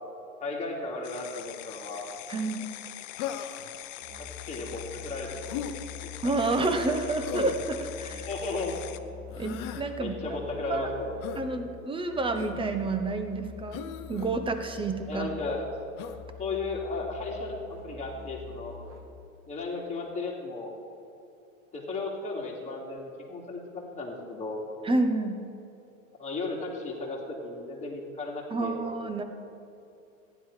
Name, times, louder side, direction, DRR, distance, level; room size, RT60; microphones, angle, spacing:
voice 1, 0.4-2.1 4.2-5.4 6.0-6.4 8.3-8.7 10.0-11.1 15.1-15.7 16.4-18.8 19.5-20.7 21.7-24.6 26.2-28.9, left 3 dB, 15° left, -3 dB, 2.9 m, -35 dB
sound 1, 1.0-9.0, left 13 dB, 65° left, 0.8 m, -43 dB
voice 2, 2.3-2.6 6.2-8.3 9.4-10.1 10.7-10.9 11.4-15.3 24.8-25.4 28.5-29.2, right 3 dB, 10° right, 7 dB, 1.1 m, -29 dB
Human voice, 3.2-3.7 5.5-5.8 7.2-7.7 9.3-9.9 11.2-11.4 12.4-12.7 13.7-14.3 16.0-16.2, left 10 dB, 50° left, 1.0 m, -37 dB
Musical instrument, 4.0-19.3, left 7 dB, 50° right, 2.0 m, -45 dB
15.0 x 10.5 x 5.0 m, 2.7 s
hypercardioid pair, 110°, 42 cm